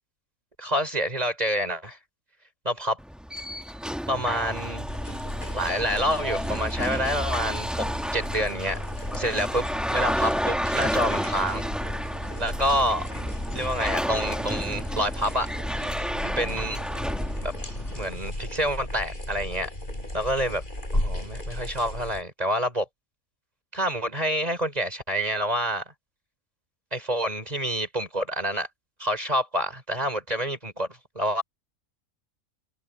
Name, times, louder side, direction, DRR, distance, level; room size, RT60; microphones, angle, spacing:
voice 1, 0.6-2.0 2.6-3.0 4.1-4.9 5.5-7.9 8.1-8.8 9.2-9.6 9.9-11.7 12.4-13.1 13.5-15.5 16.4-16.8 17.4-17.5 17.9-19.7 20.1-20.6 20.9-22.9 23.7-25.8 26.9-28.7 29.0-30.9 31.1-31.4, equal, 30° right, 4.4 m, -27 dB
sound 1, 3.0-18.1, equal, ahead, 0.9 m, -31 dB
sound 2, 4.9-22.2, left 1 dB, 35° left, 7.8 m, -35 dB
omnidirectional pair, 1.4 m